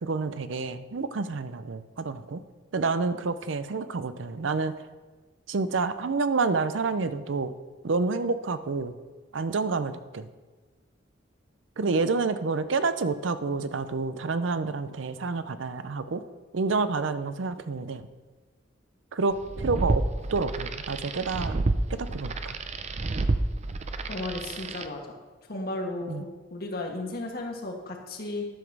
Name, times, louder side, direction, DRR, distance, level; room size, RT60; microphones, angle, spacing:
voice 1, 0.0-2.4 2.7-4.7 5.5-7.5 7.8-9.0 9.3-10.3 11.8-16.2 16.5-18.1 19.1-20.0 20.3-21.6 21.9-22.6 26.1-26.3, right 4 dB, 85° right, 12 dB, 0.6 m, -28 dB
sound 1, 19.4-24.9, right 2 dB, 35° right, 0.5 m, -30 dB
voice 2, 24.1-25.0 25.5-28.5, left 2 dB, 55° left, 1 dB, 1.5 m, -34 dB
11.5 x 5.1 x 6.1 m, 1.3 s
head